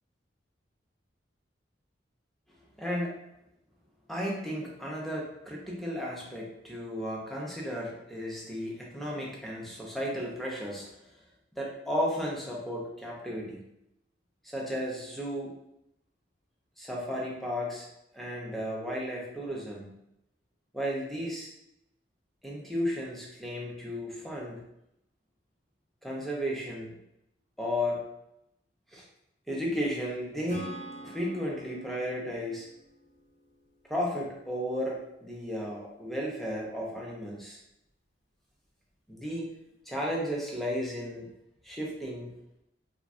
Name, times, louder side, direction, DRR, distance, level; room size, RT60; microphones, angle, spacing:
voice 1, 2.8-3.2 4.1-10.9 11.6-13.6 14.4-15.5 16.8-17.9 18.1-19.9 20.7-21.5 22.4-24.6 26.0-26.9 27.6-28.0 28.9-29.0 29.5-30.7 31.0-32.7 33.9-37.6 39.1-39.5 39.9-41.3 41.6-42.3, equal, ahead, -4 dB, 0.5 m, -34 dB
Acoustic guitar / Strum, 30.5-34.1, right 1 dB, 70° left, 0.8 m, -45 dB
3.4 x 2.2 x 2.5 m, 0.82 s
head